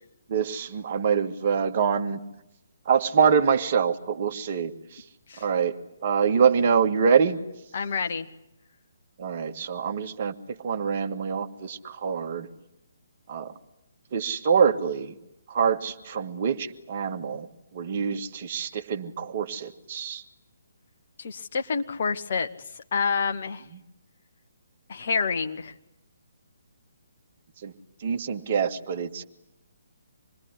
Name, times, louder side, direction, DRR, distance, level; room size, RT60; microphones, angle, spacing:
voice 1, 0.3-2.2 2.9-5.0 5.4-5.7 6.0-7.4 9.2-12.5 13.3-13.5 14.1-15.1 15.5-17.5 17.7-20.2 27.6-27.7 28.0-29.2, right 6 dB, 35° right, 6 dB, 1.8 m, -25 dB
voice 2, 7.7-8.3 21.2-22.5 22.9-23.6 24.9-25.7, left 5 dB, 45° left, 6 dB, 1.9 m, -28 dB
27.0 x 21.5 x 10.0 m, 0.86 s
figure-of-eight pair, 135°, 0 cm